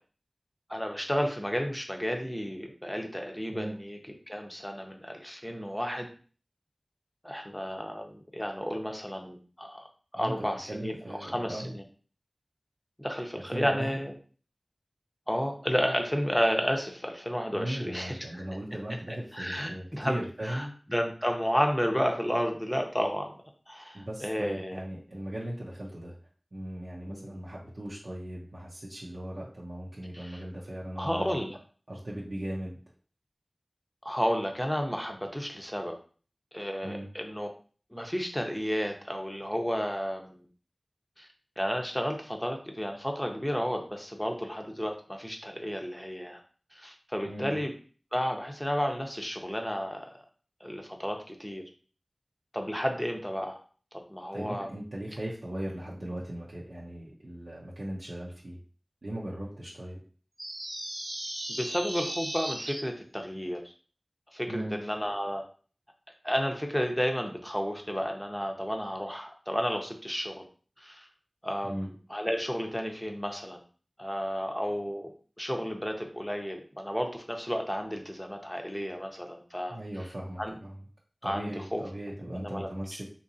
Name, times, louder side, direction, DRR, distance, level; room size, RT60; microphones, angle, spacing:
voice 1, 0.7-4.0 4.3-6.1 7.2-9.8 10.1-11.8 13.0-14.1 15.3-18.4 19.3-20.2 20.4-23.3 23.7-24.8 27.1-27.4 30.1-30.4 31.0-31.6 34.0-36.0 36.5-37.5 37.9-40.5 41.2-41.3 41.6-46.4 46.7-47.7 48.1-50.2 50.6-51.6 52.5-53.6 54.1-54.7 61.5-63.6 64.3-65.4 66.2-70.4 70.8-71.1 71.4-73.6 74.0-79.8 80.4-80.6 81.2-81.8 82.3-82.7, equal, 10° left, 3 dB, 0.7 m, -32 dB
voice 2, 10.1-11.7 13.5-14.0 17.5-20.7 23.9-26.1 26.5-31.4 31.9-32.8 36.8-37.0 47.2-47.6 54.3-58.6 59.0-60.0 64.5-64.8 71.6-71.9 79.7-80.8 81.2-83.1, right 1 dB, 75° right, -6 dB, 0.7 m, -38 dB
sound 1, 60.4-62.8, right 1 dB, 35° right, 0.4 m, -36 dB
3.8 x 2.9 x 2.6 m, 0.41 s
wide cardioid pair, 50°, 0 cm